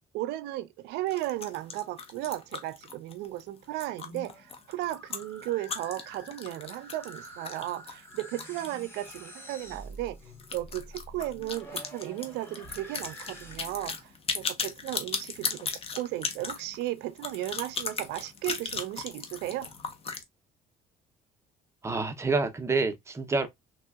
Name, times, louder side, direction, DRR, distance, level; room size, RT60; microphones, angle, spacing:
voice 1, 0.0-10.2 10.5-15.7 15.9-19.7, right 15 dB, 90° right, 0.4 m, -35 dB
sound 1, 1.1-9.3 9.5-9.6 9.9-10.0 10.4-20.2, left 4 dB, 35° left, 0.7 m, -37 dB
sound 2, 4.0-13.9, equal, 15° left, 0.9 m, -48 dB
voice 2, 21.8-23.5, right 3 dB, 15° right, 0.6 m, -28 dB
3.2 x 2.7 x 2.3 m
cardioid pair, 110°, 17 cm